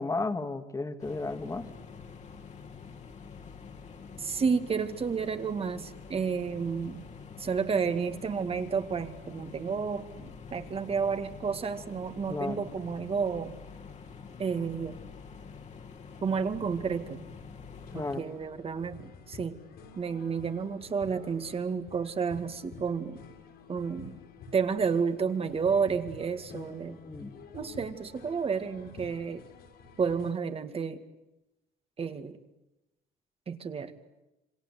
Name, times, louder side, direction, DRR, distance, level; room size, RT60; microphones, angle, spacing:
voice 1, 0.0-1.7 12.3-12.7 17.9-18.3 26.5-27.4, left 3 dB, 20° left, 9 dB, 2.1 m, -34 dB
sound 1, 1.0-18.1, left 5 dB, 45° left, 2.8 m, -47 dB
voice 2, 4.2-7.0 7.4-13.6 14.4-15.0 16.2-17.2 17.9-19.6 20.0-23.2 23.7-24.2 24.5-27.0 27.5-29.4 30.0-31.0 32.0-32.4 33.5-33.9, right 5 dB, 35° right, 9 dB, 2.2 m, -31 dB
sound 2, 17.7-30.3, left 4 dB, 75° left, 6.5 m, -50 dB
27.5 x 26.0 x 8.3 m, 0.96 s
cardioid pair, 110°, 17 cm